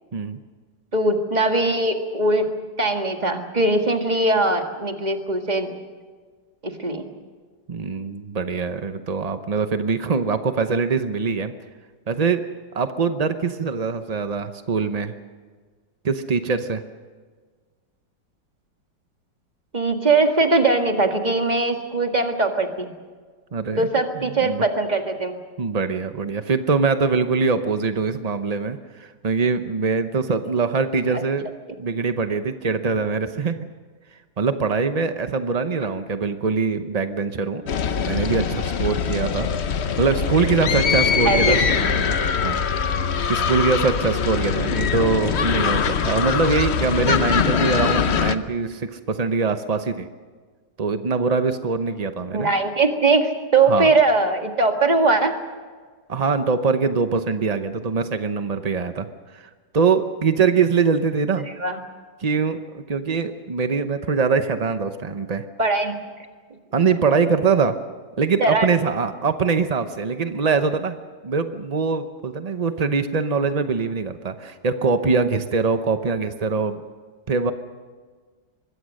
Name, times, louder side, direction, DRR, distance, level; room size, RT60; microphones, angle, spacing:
voice 1, 0.9-2.5 2.8-5.7 6.6-7.1 19.7-22.9 23.8-25.4 31.1-31.2 35.8-36.0 41.2-41.6 52.3-55.3 61.6-61.8 65.6-66.0 68.4-68.7, right 3 dB, 25° right, 4 dB, 1.9 m, -20 dB
voice 2, 7.7-11.5 12.1-12.4 12.7-15.1 16.0-16.8 23.5-23.8 24.2-24.6 25.6-31.5 31.8-33.7 34.4-37.6 38.0-39.5 40.0-42.9 43.3-50.1 50.8-52.5 53.7-53.9 56.1-59.1 59.3-61.5 62.2-65.4 66.7-67.8 68.2-71.0 71.2-76.8 77.3-77.5, right 5 dB, 60° right, 9 dB, 0.4 m, -23 dB
sound 1, 37.7-48.3, left 7 dB, 50° left, 0.8 m, -22 dB
25.0 x 21.5 x 6.5 m, 1.5 s
omnidirectional pair, 2.1 m